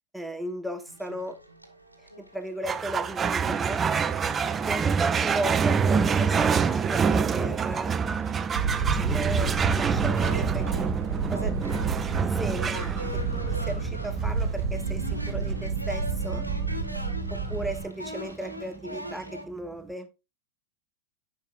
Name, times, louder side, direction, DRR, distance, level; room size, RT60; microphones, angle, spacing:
voice 1, 0.1-1.4 2.2-3.9 4.6-7.9 8.7-10.9 11.3-11.5 12.2-16.5 17.3-20.1, right 1 dB, 5° right, 7 dB, 1.1 m, -36 dB
Help me horror cry, 0.9-4.8 5.4-5.5 5.7-19.4, equal, 90° right, 1.3 m, -43 dB
sound 1, 2.6-19.4, right 6 dB, 20° right, 0.5 m, -27 dB
sound 2, 8.5-17.8, right 5 dB, 55° right, 1.0 m, -30 dB
9.7 x 6.0 x 2.5 m, 0.27 s
figure-of-eight pair, 90°, 0 cm